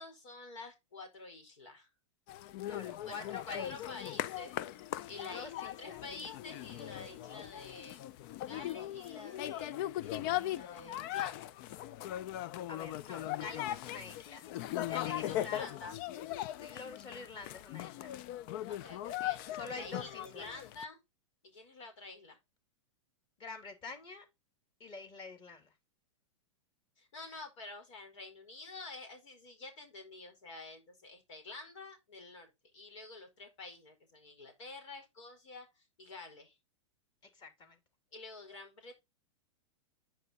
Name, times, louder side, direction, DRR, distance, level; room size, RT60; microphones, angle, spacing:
voice 1, 0.0-1.9 3.0-4.6 5.1-9.7 10.0-11.5 14.9-16.0 18.7-21.0 21.4-22.4 27.0-36.6 38.1-39.0, left 3 dB, 70° left, 4.9 m, -49 dB
sound 1, 2.3-20.8, left 13 dB, 45° left, 0.5 m, -39 dB
voice 2, 2.7-3.7 5.0-6.0 12.7-14.5 14.8-15.7 16.6-18.1 19.5-20.5 23.4-24.3 24.8-25.7 37.3-37.8, left 4 dB, 30° left, 2.9 m, -47 dB
9.9 x 5.6 x 4.1 m
hypercardioid pair, 130°, 16 cm